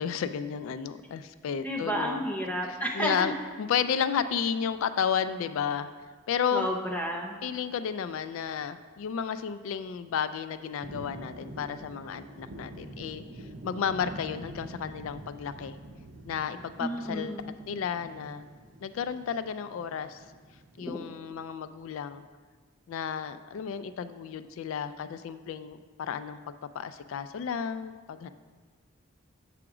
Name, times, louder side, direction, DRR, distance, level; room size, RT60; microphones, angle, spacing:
voice 1, 0.0-2.2 2.6-5.9 6.3-6.7 7.4-13.2 13.6-15.8 16.3-18.5 18.8-20.2 20.8-22.2 22.9-28.3, left 7 dB, 70° left, 12 dB, 0.3 m, -32 dB
voice 2, 1.6-3.3 6.5-7.4 16.8-17.5 20.9-21.0, equal, 5° left, -1 dB, 0.6 m, -31 dB
sound 1, 10.8-20.8, right 1 dB, 55° right, 0.7 m, -46 dB
7.7 x 4.9 x 4.8 m, 1.5 s
head